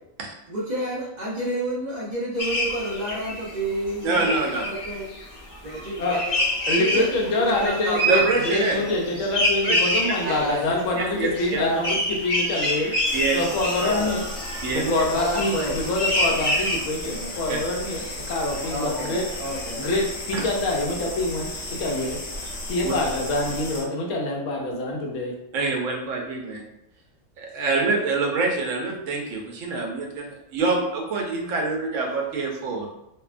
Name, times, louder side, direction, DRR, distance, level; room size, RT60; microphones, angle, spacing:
voice 1, 0.5-5.1 5.6-6.5 6.8-7.1 7.3-8.3 8.7-9.0 10.2-10.7 11.5-11.9 13.8-14.1 15.1-15.8 18.7-19.9, right 1 dB, 50° right, -7 dB, 0.5 m, -29 dB
sound 1, 2.4-3.6 3.9-16.8, equal, 30° left, 0.7 m, -27 dB
voice 2, 4.0-4.6 8.1-8.8 9.6-9.8 10.3-11.6 13.1-13.5 14.6-14.9 17.5-17.6 20.3-20.5 22.8-22.9 25.5-26.6 27.4-32.9, right 3 dB, 80° right, 1 dB, 0.9 m, -26 dB
voice 3, 6.7-12.9 13.3-14.2 14.7-19.3 19.8-21.5 21.8-22.2 22.7-25.3, left 2 dB, 80° left, 0 dB, 1.0 m, -26 dB
sound 2, 13.0-23.8, left 1 dB, 65° left, 0.9 m, -34 dB
2.7 x 2.1 x 2.4 m, 0.84 s
omnidirectional pair, 1.3 m